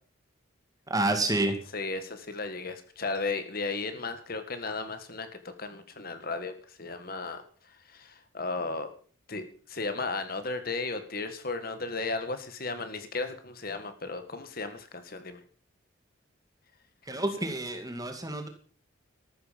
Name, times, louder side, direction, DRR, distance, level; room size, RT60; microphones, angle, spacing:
voice 1, 0.9-1.6 17.1-18.5, right 2 dB, 20° right, 6 dB, 2.2 m, -28 dB
voice 2, 1.7-8.9 9.3-15.4, left 3 dB, 50° left, 9 dB, 1.8 m, -35 dB
14.0 x 13.0 x 5.2 m, 0.43 s
head